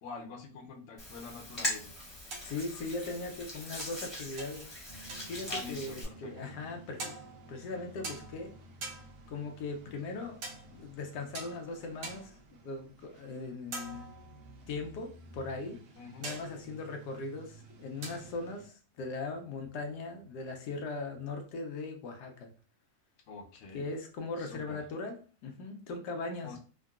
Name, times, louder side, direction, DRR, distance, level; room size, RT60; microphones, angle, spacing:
voice 1, 0.0-1.9 5.5-6.3 16.0-16.3 23.3-23.8 24.4-24.8 26.4-26.6, left 4 dB, 65° left, 1 dB, 1.0 m, -45 dB
Hands, 1.0-6.0, left 1 dB, 20° left, 0.9 m, -40 dB
sound 1, 2.3-2.8 3.8-4.8 5.1-5.6 6.4-6.6 7.0-7.7 8.0-9.4 10.4-10.8 11.3-12.5 13.7-14.6 16.2-16.9 18.0-18.5, right 3 dB, 85° right, 1.3 m, -45 dB
voice 2, 2.4-4.7 5.3-7.2 7.5-8.5 9.3-10.4 10.7-12.4 12.6-14.1 14.7-15.8 16.2-22.5 23.7-26.5, left 3 dB, 85° left, 3 dB, 1.3 m, -39 dB
sound 2, 4.9-18.7, right 2 dB, 65° right, 0.5 m, -54 dB
3.6 x 2.2 x 2.4 m, 0.38 s
omnidirectional pair, 1.7 m